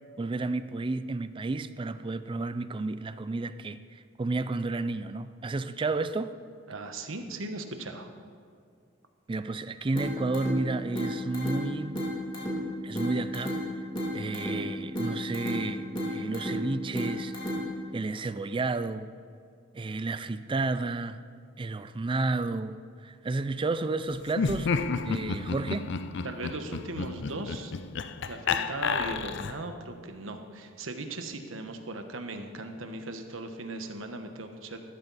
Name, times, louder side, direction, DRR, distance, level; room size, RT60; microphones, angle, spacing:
voice 1, 0.2-6.4 9.3-12.1 12.8-13.8 14.1-17.3 17.9-19.1 19.7-21.2 21.6-24.7 25.0-25.9, right 3 dB, 25° right, 0.4 m, -31 dB
voice 2, 6.7-8.1 26.2-27.7 28.3-34.8, right 2 dB, 85° right, 1.2 m, -38 dB
sound 1, 10.0-18.0, left 1 dB, 25° left, 2.6 m, -34 dB
Laughter, 24.3-29.7, left 5 dB, 60° left, 0.5 m, -31 dB
15.0 x 13.0 x 4.1 m
head